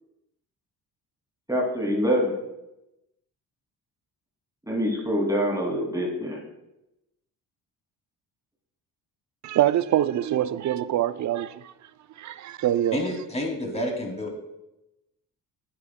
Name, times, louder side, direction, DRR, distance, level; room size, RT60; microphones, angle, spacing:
voice 1, 1.5-2.3 4.7-6.4, equal, 10° right, 2.5 m, -25 dB
voice 2, 9.4-11.7 12.2-13.0, right 12 dB, 45° right, 0.5 m, -24 dB
voice 3, 12.9-14.4, left 1 dB, 15° left, 2.5 m, -29 dB
9.6 x 8.8 x 2.2 m
supercardioid pair, 60°, 43 cm